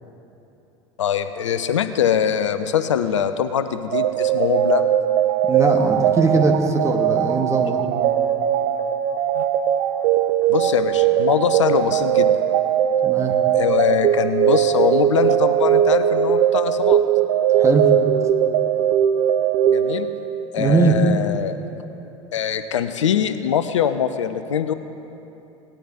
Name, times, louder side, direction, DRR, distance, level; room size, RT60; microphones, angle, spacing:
voice 1, 1.0-5.0 9.4-9.5 10.5-12.4 13.6-17.0 19.7-20.1 20.5-21.6 22.3-24.7, left 8 dB, 70° left, 10 dB, 0.5 m, -22 dB
sound 1, 3.9-20.5, right 10 dB, 50° right, 0.5 m, -20 dB
voice 2, 5.4-7.8 13.0-13.4 17.5-17.9 20.6-21.0, right 3 dB, 20° right, 2 dB, 1.4 m, -20 dB
18.5 x 9.9 x 2.8 m, 3.0 s
figure-of-eight pair, 70°, 16 cm